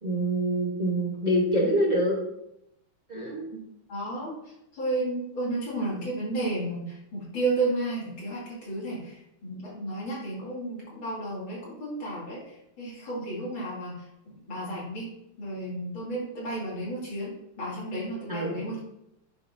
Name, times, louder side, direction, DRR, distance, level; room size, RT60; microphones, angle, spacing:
voice 1, 0.0-2.2 3.1-3.5 18.3-18.6, right 1 dB, 30° right, -4 dB, 0.9 m, -25 dB
voice 2, 3.9-15.1 15.4-18.8, right 2 dB, 65° left, -6 dB, 3.2 m, -32 dB
11.0 x 3.8 x 2.6 m, 0.82 s
omnidirectional pair, 2.3 m